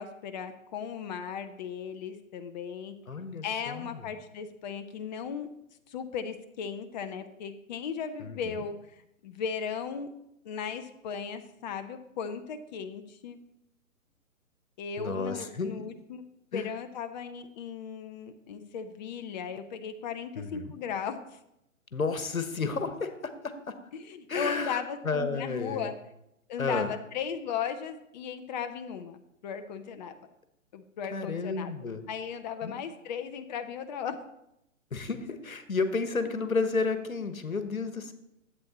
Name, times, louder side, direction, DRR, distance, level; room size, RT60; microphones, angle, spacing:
voice 1, 0.0-2.9 3.4-5.5 5.9-9.0 9.2-10.1 10.4-13.4 14.8-16.2 16.5-21.4 23.9-25.9 26.5-30.2 30.7-31.7 32.1-34.2, left 7 dB, 35° left, 8 dB, 0.6 m, -36 dB
voice 2, 3.1-4.0 8.2-8.6 15.0-15.7 16.5-16.6 20.4-20.7 21.9-23.7 24.3-25.9 26.6-26.9 31.1-32.0 32.6-32.7 34.9-38.1, left 4 dB, 85° left, 9 dB, 1.2 m, -32 dB
11.5 x 8.1 x 4.1 m, 0.84 s
figure-of-eight pair, 125°, 40 cm